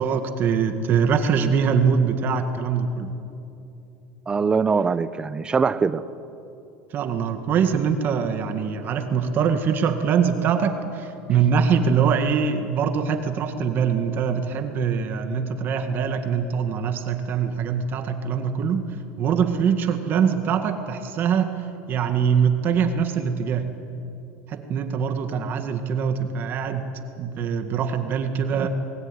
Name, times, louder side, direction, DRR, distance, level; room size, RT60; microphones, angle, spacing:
voice 1, 0.0-3.1 6.9-18.9 19.2-21.6 21.9-23.7 24.5-26.9 27.2-28.7, right 6 dB, 40° right, 7 dB, 1.9 m, -23 dB
voice 2, 4.3-6.1 28.6-28.7, right 5 dB, 15° right, 15 dB, 0.8 m, -22 dB
29.0 x 21.0 x 9.9 m, 2.8 s
cardioid pair, 150°, 6 cm